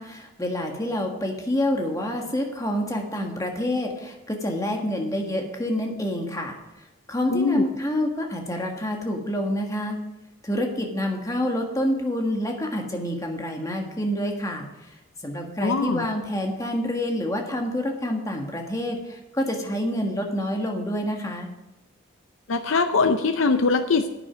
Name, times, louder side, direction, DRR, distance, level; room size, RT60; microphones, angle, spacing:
voice 1, 0.0-6.6 7.1-10.0 10.4-14.6 15.2-21.5, left 1 dB, 15° left, 1 dB, 1.5 m, -27 dB
voice 2, 7.3-7.6 15.6-16.1 22.5-24.1, left 4 dB, 70° left, 8 dB, 0.6 m, -22 dB
10.5 x 8.9 x 5.1 m, 0.99 s
head